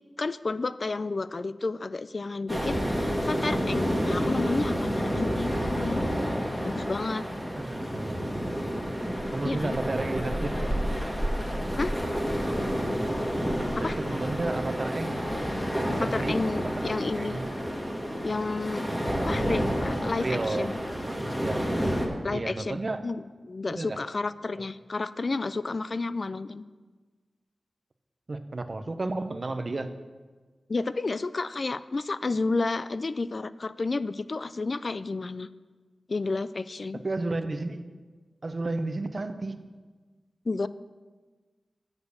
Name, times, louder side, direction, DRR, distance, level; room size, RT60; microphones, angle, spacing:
voice 1, 0.2-2.8 3.2-6.0 6.6-7.3 9.4-9.8 11.8-11.9 13.8-14.0 15.9-17.4 18.2-18.9 19.2-20.8 22.2-22.8 23.0-26.6 30.7-35.5 36.1-37.0 40.5-40.7, left 3 dB, 55° left, 15 dB, 0.3 m, -31 dB
sound 1, 2.5-22.1, equal, 5° left, 1.7 m, -29 dB
voice 2, 4.5-5.2 7.5-8.4 9.3-10.5 13.5-15.2 15.8-17.5 19.4-21.7 22.3-23.0 23.8-24.0 24.6-24.7 28.3-29.9 37.0-37.8 38.4-39.6, right 2 dB, 50° right, 9 dB, 0.7 m, -33 dB
7.0 x 6.6 x 6.9 m, 1.4 s
cardioid pair, 55°, 0 cm